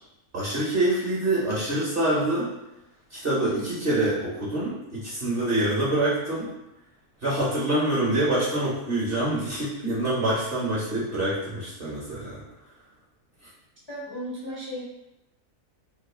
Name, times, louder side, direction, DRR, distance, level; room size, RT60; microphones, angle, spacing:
voice 1, 0.3-2.5 3.1-6.5 7.2-12.4, right 1 dB, 50° right, -7 dB, 0.8 m, -26 dB
voice 2, 13.9-14.8, equal, 45° left, -7 dB, 0.3 m, -35 dB
2.9 x 2.4 x 3.2 m, 0.93 s
omnidirectional pair, 1.6 m